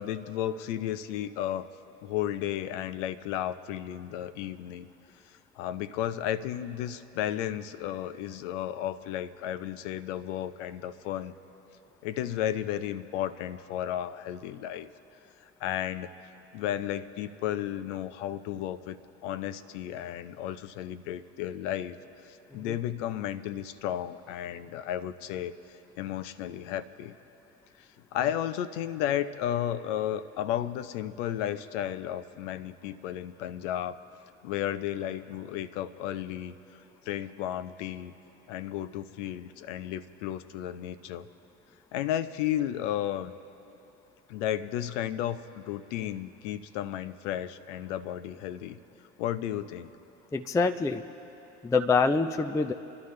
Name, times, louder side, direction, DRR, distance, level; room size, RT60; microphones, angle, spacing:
voice 1, 0.0-1.7 2.0-4.9 5.6-11.3 12.0-14.9 15.6-16.1 16.5-22.0 22.2-25.5 26.0-27.1 27.8-34.0 34.4-36.5 37.1-38.1 38.5-41.3 41.9-43.3 44.3-48.8 49.2-49.9, left 11 dB, 75° left, 12 dB, 0.7 m, -33 dB
voice 2, 50.3-51.0 51.6-52.7, left 4 dB, 10° left, 7 dB, 0.4 m, -25 dB
26.0 x 11.5 x 3.2 m, 2.8 s
hypercardioid pair, 70°, 37 cm